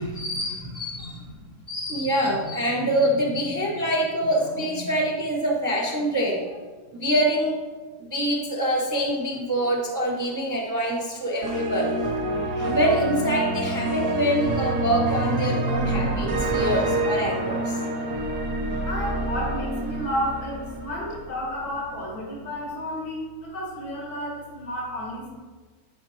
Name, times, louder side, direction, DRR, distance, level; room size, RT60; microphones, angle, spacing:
voice 1, 0.0-1.3 1.7-6.6 7.0-7.7 8.0-12.1 12.5-17.8, right 1 dB, 25° right, -2 dB, 0.4 m, -25 dB
sound 1, 11.4-21.5, right 1 dB, 50° right, 0.8 m, -27 dB
voice 2, 18.9-25.3, equal, 85° left, -3 dB, 2.1 m, -31 dB
10.5 x 4.5 x 3.1 m, 1.4 s
omnidirectional pair, 1.6 m